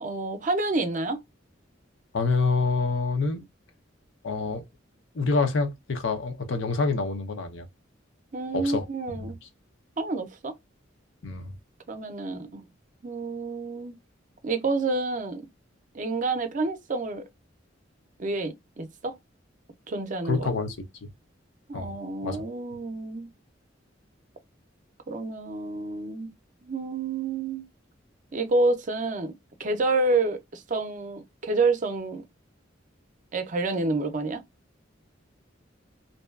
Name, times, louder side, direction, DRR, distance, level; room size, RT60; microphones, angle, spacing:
voice 1, 0.0-1.2 8.3-9.4 10.0-10.6 11.9-12.6 13.0-14.0 14.4-15.4 15.9-17.2 18.2-19.2 19.9-20.5 21.7-23.3 25.1-26.3 26.6-27.7 28.3-29.3 29.6-32.2 33.3-34.4, right 3 dB, 40° right, 0.5 m, -28 dB
voice 2, 2.1-3.4 4.2-4.6 5.1-7.7 8.5-8.8 9.2-9.3 11.2-11.5 20.2-21.1 21.7-21.9 22.2-22.4, left 4 dB, 80° left, 0.6 m, -27 dB
2.6 x 2.3 x 2.3 m
head